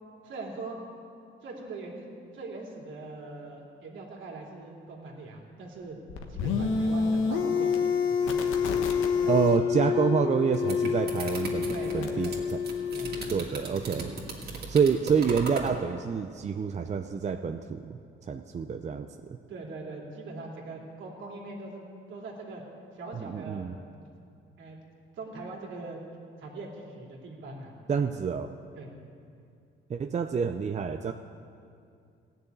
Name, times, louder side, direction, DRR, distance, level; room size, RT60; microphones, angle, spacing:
voice 1, 0.2-0.8 1.4-6.0 6.3-8.8 9.1-9.5 11.7-12.3 12.7-13.8 14.1-14.5 19.5-22.6 22.9-23.7 24.6-24.8 25.2-26.0 26.4-28.0 28.7-29.1, right 3 dB, 75° right, -1 dB, 2.8 m, -42 dB
sound 1, 6.1-13.3, left 6 dB, 90° left, 1.3 m, -28 dB
voice 2, 9.3-12.6 13.3-14.1 14.7-18.0 18.3-19.1 23.1-23.8 27.9-28.5 29.9-31.1, right 6 dB, 35° right, 7 dB, 0.6 m, -27 dB
sound 2, 10.3-15.7, right 4 dB, 55° right, 2.4 m, -38 dB
15.5 x 7.0 x 9.3 m, 2.4 s
cardioid pair, 90°, 20 cm